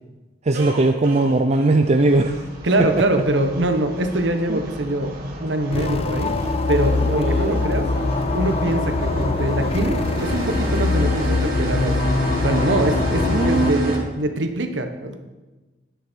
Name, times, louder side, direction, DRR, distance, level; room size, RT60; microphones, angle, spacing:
voice 1, 0.5-2.4 2.8-3.1 4.5-4.6 7.0-7.7 13.2-14.0, right 2 dB, 35° right, 6 dB, 0.5 m, -20 dB
sound 1, 0.5-14.0, equal, 55° right, 2.8 m, -31 dB
voice 2, 2.6-6.3 6.7-7.9 8.3-12.0 12.4-15.2, right 1 dB, 90° right, 7 dB, 1.2 m, -23 dB
sound 2, 5.7-13.7, left 3 dB, 35° left, 0.5 m, -23 dB
10.5 x 9.8 x 4.5 m, 1.2 s
head